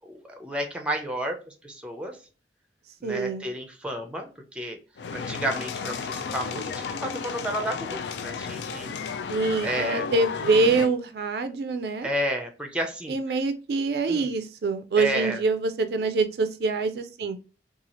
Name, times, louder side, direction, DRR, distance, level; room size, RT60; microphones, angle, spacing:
voice 1, 0.0-2.2 3.0-4.8 5.1-8.9 9.6-10.1 12.0-13.2 14.1-14.3 15.0-15.4, right 1 dB, 5° right, 4 dB, 0.5 m, -31 dB
voice 2, 3.0-3.5 9.3-12.1 13.1-17.4, right 3 dB, 60° right, 9 dB, 0.3 m, -25 dB
sound 1, 5.0-10.9, left 5 dB, 75° left, 0.3 m, -33 dB
2.8 x 2.3 x 2.9 m, 0.35 s
head